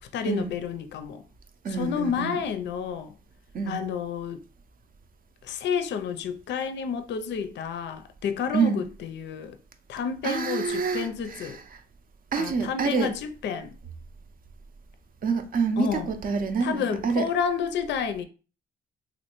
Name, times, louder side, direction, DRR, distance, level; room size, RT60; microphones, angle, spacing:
voice 1, 0.1-1.2 1.7-3.1 3.7-4.4 5.4-9.6 9.9-11.6 12.4-13.7 15.8-16.1 16.6-18.2, left 7 dB, 65° left, 0.4 m, -30 dB
voice 2, 1.6-2.4 3.5-3.8 8.5-8.8 10.2-11.5 12.3-13.1 15.2-17.3, right 5 dB, 45° right, 0.5 m, -27 dB
3.1 x 2.5 x 3.0 m
cardioid pair, 90°, 20 cm